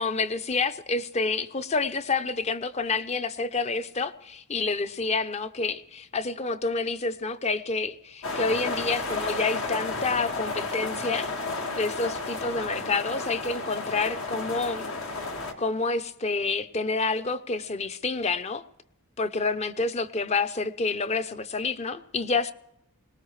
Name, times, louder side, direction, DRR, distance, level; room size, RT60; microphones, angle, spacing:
voice 1, 0.0-11.3 11.8-14.9 15.6-18.6 19.2-22.5, left 3 dB, 30° left, 0.6 m, -28 dB
sound 1, 8.2-15.5, left 3 dB, 70° left, 1.9 m, -32 dB
21.5 x 19.0 x 3.2 m
head